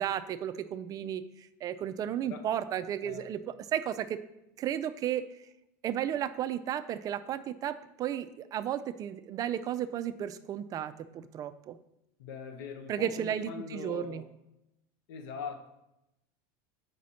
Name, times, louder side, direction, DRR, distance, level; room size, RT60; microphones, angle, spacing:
voice 1, 0.0-4.2 4.6-5.2 5.8-11.8 12.9-14.2, right 10 dB, 35° right, 12 dB, 0.3 m, -34 dB
voice 2, 12.2-14.3 15.1-15.7, left 5 dB, 80° left, 7 dB, 0.9 m, -42 dB
6.1 x 5.1 x 4.1 m, 0.87 s
supercardioid pair, 130°, 11 cm